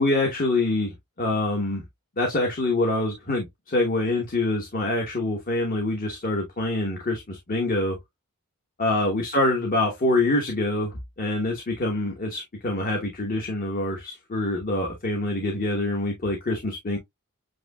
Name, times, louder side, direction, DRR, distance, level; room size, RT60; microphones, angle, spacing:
voice 1, 0.0-1.8 2.2-8.0 8.8-17.0, left 2 dB, 40° left, 1.0 m, -25 dB
7.6 x 2.7 x 2.2 m
head